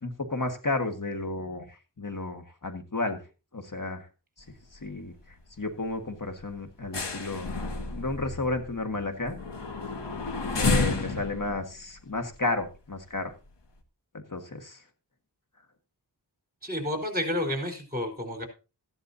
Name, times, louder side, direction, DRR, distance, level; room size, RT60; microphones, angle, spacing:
voice 1, 0.0-3.2 3.5-4.1 4.7-5.1 5.6-7.5 7.9-9.4 10.5-13.3 14.1-14.8, left 2 dB, 50° left, 6 dB, 1.7 m, -32 dB
sound 1, 4.4-4.9 5.1-5.3 5.7-5.9 6.3-13.0 13.5-13.6, left 3 dB, 85° left, 1.6 m, -31 dB
voice 2, 16.6-18.5, left 1 dB, 20° right, 5 dB, 4.2 m, -30 dB
14.5 x 11.0 x 2.8 m, 0.31 s
wide cardioid pair, 50°, 41 cm